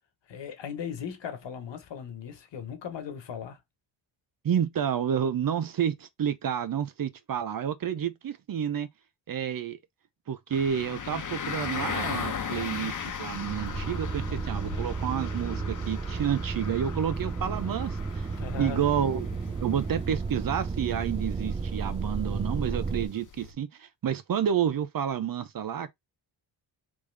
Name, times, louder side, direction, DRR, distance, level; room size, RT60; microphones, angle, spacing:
voice 1, 0.3-3.6 18.4-18.9 19.4-19.6, left 7 dB, 65° left, 1.5 m, -38 dB
voice 2, 4.4-8.9 9.3-9.8 10.3-18.3 18.6-19.3 19.6-25.9, right 8 dB, 45° right, 0.8 m, -30 dB
sound 1, 10.5-23.5, left 7 dB, 40° left, 1.1 m, -38 dB
sound 2, 13.3-23.1, right 4 dB, 15° right, 0.4 m, -33 dB
3.6 x 3.4 x 3.4 m
cardioid pair, 80°, 47 cm